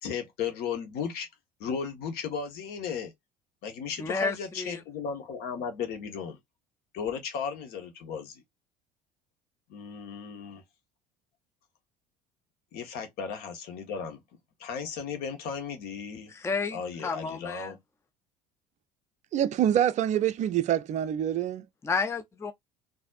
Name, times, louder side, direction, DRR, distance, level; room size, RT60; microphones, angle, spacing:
voice 1, 0.0-1.3 1.6-3.1 3.6-6.4 6.9-8.4 9.7-10.6 12.7-14.2 14.6-16.3 16.7-17.8, left 6 dB, 55° left, 1.2 m, -35 dB
voice 2, 4.0-4.8 16.3-17.8 21.8-22.5, left 4 dB, 15° left, 0.5 m, -31 dB
voice 3, 19.3-21.6, right 10 dB, 40° right, 0.4 m, -26 dB
4.1 x 2.6 x 2.4 m
figure-of-eight pair, 65°, 20 cm